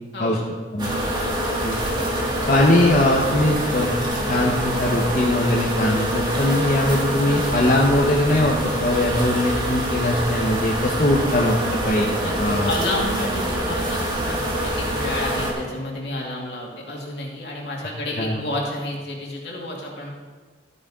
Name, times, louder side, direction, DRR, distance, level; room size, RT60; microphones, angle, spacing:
sound 1, 0.8-15.5, equal, 25° right, 2.1 m, -25 dB
voice 1, 2.5-3.9 4.3-11.6 11.8-12.1 12.4-12.7 18.2-18.4, left 1 dB, 45° left, -3 dB, 1.1 m, -21 dB
voice 2, 12.2-20.1, left 1 dB, 75° left, -2 dB, 2.5 m, -30 dB
13.5 x 9.3 x 3.8 m, 1.4 s
head